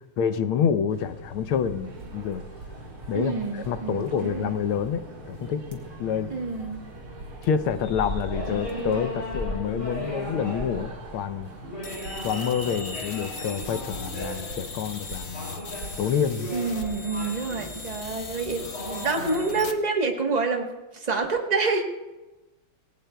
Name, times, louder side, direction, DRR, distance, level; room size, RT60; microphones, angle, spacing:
voice 1, 0.2-2.4 3.1-6.3 7.4-11.5 12.2-15.6 16.0-16.5, left 7 dB, 85° left, 10 dB, 1.6 m, -28 dB
sound 1, 0.9-19.7, equal, 25° left, 5.1 m, -37 dB
sound 2, 1.8-16.9, right 4 dB, 90° right, 2.6 m, -45 dB
voice 2, 3.1-4.5 6.3-6.8 16.5-21.8, right 4 dB, 25° right, 2 dB, 0.9 m, -28 dB
sound 3, 11.8-19.7, left 5 dB, 50° left, 0.8 m, -40 dB
26.5 x 19.0 x 2.3 m, 1.1 s
omnidirectional pair, 2.3 m